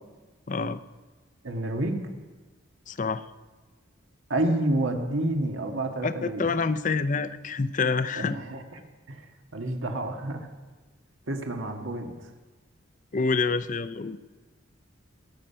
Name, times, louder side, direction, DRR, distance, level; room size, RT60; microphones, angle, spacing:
voice 1, 0.5-0.8 2.9-3.2 6.0-8.4 13.1-14.2, left 4 dB, 40° left, 13 dB, 0.5 m, -27 dB
voice 2, 1.4-2.0 4.3-6.5 8.1-8.6 9.1-9.2 9.5-10.5 11.3-12.1, right 1 dB, 85° right, 4 dB, 1.6 m, -29 dB
20.0 x 8.8 x 5.7 m, 1.3 s
head